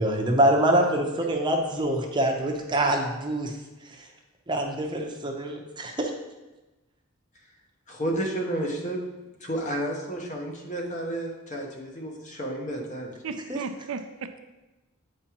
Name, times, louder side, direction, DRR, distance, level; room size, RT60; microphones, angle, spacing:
voice 1, 0.0-3.5 3.8-4.1 4.5-6.1 13.5-13.6, right 1 dB, 20° right, 1 dB, 0.7 m, -25 dB
voice 2, 7.9-9.0 9.4-13.1, right 1 dB, 35° left, 0 dB, 1.0 m, -31 dB
voice 3, 13.2-14.4, right 5 dB, 65° right, 8 dB, 0.4 m, -35 dB
8.6 x 4.8 x 3.0 m, 1.1 s
head